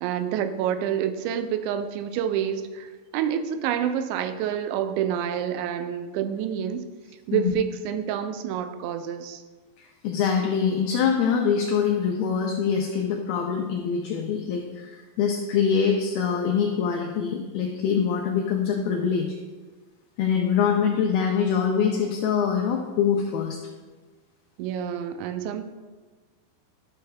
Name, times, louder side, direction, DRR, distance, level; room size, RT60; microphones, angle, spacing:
voice 1, 0.0-6.8 7.3-9.4 24.6-25.6, right 9 dB, 90° right, 9 dB, 2.8 m, -28 dB
voice 2, 10.0-19.4 20.2-23.6, left 7 dB, 85° left, 2 dB, 2.2 m, -24 dB
12.0 x 6.6 x 2.3 m, 1.3 s
omnidirectional pair, 5.0 m